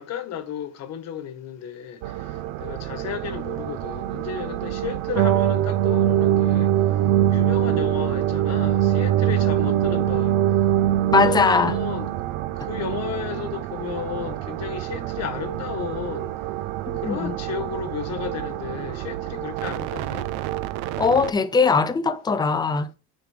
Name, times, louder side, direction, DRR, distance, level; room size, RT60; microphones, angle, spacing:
voice 1, 0.0-6.7 7.3-10.4 11.2-12.1 12.5-16.3 16.9-20.3, left 8 dB, 45° left, 1.3 m, -33 dB
sound 1, 2.0-21.3, right 14 dB, 80° right, 0.8 m, -31 dB
sound 2, 5.1-12.2, right 11 dB, 50° right, 0.6 m, -21 dB
voice 2, 11.1-11.8 16.9-17.4 21.0-22.9, left 4 dB, 10° left, 0.4 m, -20 dB
9.2 x 5.2 x 4.9 m
cardioid pair, 165°, 38 cm